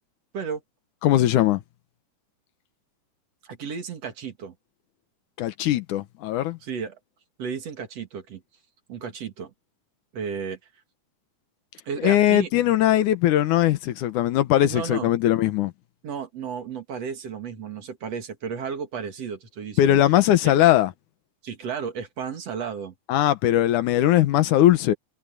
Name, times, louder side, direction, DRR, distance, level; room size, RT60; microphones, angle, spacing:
voice 1, 1.0-1.6 5.4-6.6 12.0-15.7 19.8-20.9 23.1-24.9, left 13 dB, 80° left, 2.5 m, -20 dB
voice 2, 3.4-4.5 6.6-7.0 7.4-8.4 8.9-9.5 10.1-10.6 11.8-12.5 14.7-15.1 16.0-20.0 20.4-20.5 21.4-22.9, right 6 dB, 55° right, 3.1 m, -33 dB
omnidirectional pair, 3.5 m